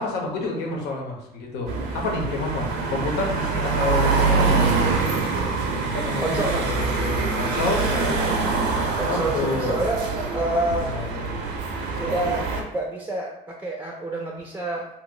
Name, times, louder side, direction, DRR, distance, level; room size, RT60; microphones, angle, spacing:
voice 1, 0.0-4.6 5.9-9.8 10.9-11.4, left 3 dB, 90° left, 0 dB, 0.8 m, -29 dB
sound 1, 1.7-12.6, right 4 dB, 90° right, 0.6 m, -24 dB
voice 2, 6.2-6.8 9.0-10.1 10.3-10.9 12.0-15.0, right 2 dB, 10° right, -1 dB, 0.4 m, -28 dB
2.9 x 2.0 x 3.7 m, 0.81 s
cardioid pair, 110°, 17 cm